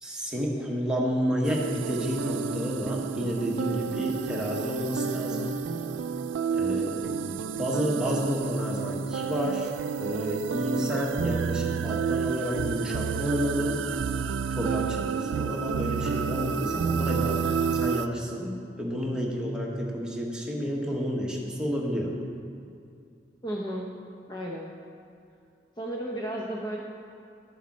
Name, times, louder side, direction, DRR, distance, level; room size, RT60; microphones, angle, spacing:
voice 1, 0.0-5.7 6.5-9.7 10.0-13.8 14.5-22.2, equal, 5° right, -3 dB, 1.3 m, -30 dB
sound 1, 1.4-18.1, right 6 dB, 90° right, 0.3 m, -30 dB
voice 2, 23.4-23.9 24.3-24.7 25.8-26.8, right 1 dB, 25° left, -2 dB, 0.7 m, -33 dB
12.5 x 7.2 x 4.3 m, 2.4 s
head